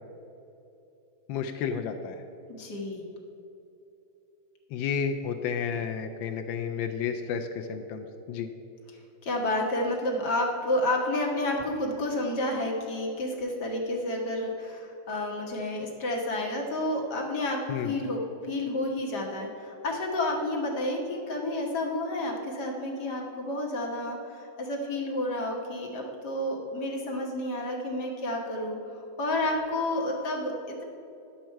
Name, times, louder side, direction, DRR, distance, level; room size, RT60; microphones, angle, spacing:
voice 1, 1.3-2.2 4.7-8.5 17.7-18.0, left 6 dB, 85° left, 7 dB, 1.3 m, -31 dB
voice 2, 2.6-3.0 9.2-28.8 29.2-30.8, left 1 dB, 60° left, 0 dB, 1.8 m, -30 dB
10.5 x 7.4 x 4.5 m, 2.8 s
omnidirectional pair, 2.1 m